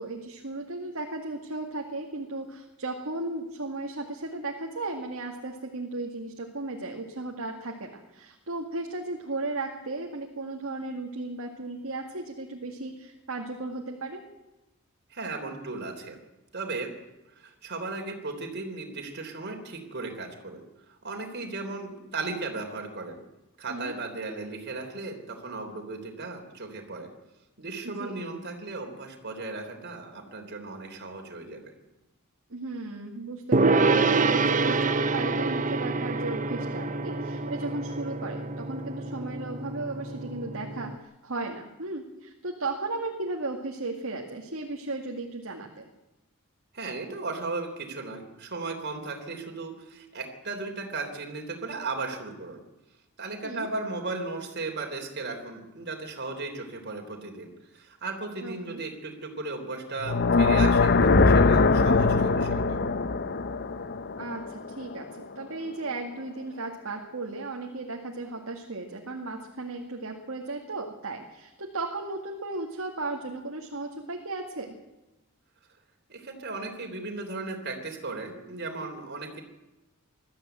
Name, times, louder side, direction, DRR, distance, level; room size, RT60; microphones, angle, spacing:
voice 1, 0.0-14.2 23.7-23.9 27.8-28.2 32.5-45.8 53.4-53.7 58.4-58.8 64.2-74.8, right 2 dB, 70° right, 1 dB, 2.1 m, -35 dB
voice 2, 15.1-16.2 16.5-16.9 17.4-20.6 20.9-23.2 23.6-27.1 27.6-31.7 46.7-52.6 53.2-62.8 76.1-79.4, right 3 dB, 50° right, 2 dB, 3.4 m, -36 dB
Gong, 33.5-41.0, right 3 dB, 35° right, 0.8 m, -26 dB
sound 1, 60.0-65.1, left 3 dB, 50° left, 0.8 m, -22 dB
21.0 x 13.5 x 9.1 m, 1.0 s
head